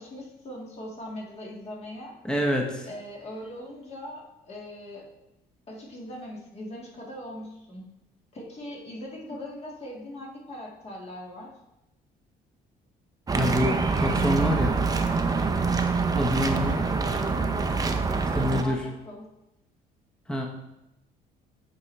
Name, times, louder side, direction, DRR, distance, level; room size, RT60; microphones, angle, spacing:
voice 1, 0.0-2.2 2.9-5.0 5.7-7.9 8.3-11.5 17.2-17.6 18.5-19.3, left 1 dB, 40° left, -2 dB, 1.9 m, -40 dB
voice 2, 2.2-2.9 13.3-14.8 16.1-16.8 18.3-18.8 20.3-20.5, equal, 5° left, 1 dB, 0.9 m, -26 dB
sound 1, 13.3-18.6, right 4 dB, 20° right, 0.6 m, -25 dB
8.3 x 4.7 x 3.2 m, 0.90 s
cardioid pair, 110°, 17 cm